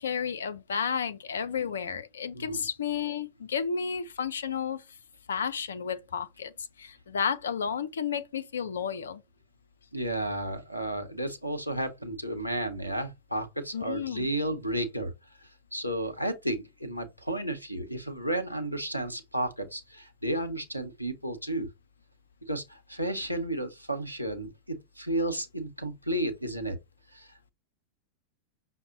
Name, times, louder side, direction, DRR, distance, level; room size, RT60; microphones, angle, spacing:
voice 1, 0.0-4.8 5.3-9.2 13.7-14.3, left 7 dB, 65° left, 0.5 m, -32 dB
voice 2, 9.9-15.1 15.4-21.7 22.5-26.8 27.1-27.5, right 1 dB, 90° right, 0.7 m, -33 dB
5.7 x 2.1 x 3.9 m
figure-of-eight pair, 90°, 0 cm